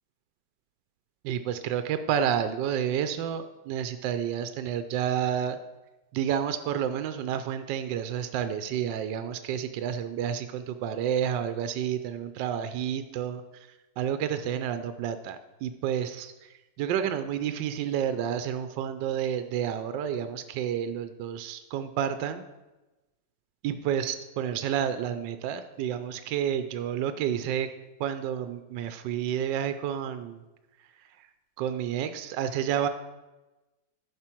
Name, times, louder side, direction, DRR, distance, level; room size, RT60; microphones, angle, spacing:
voice 1, 1.2-5.6 6.1-13.7 14.0-16.5 16.8-22.5 23.6-27.7 28.0-30.4 31.0-31.1 31.6-32.9, right 9 dB, 80° right, 10 dB, 1.3 m, -30 dB
11.0 x 6.1 x 4.5 m, 1.1 s
omnidirectional pair, 2.0 m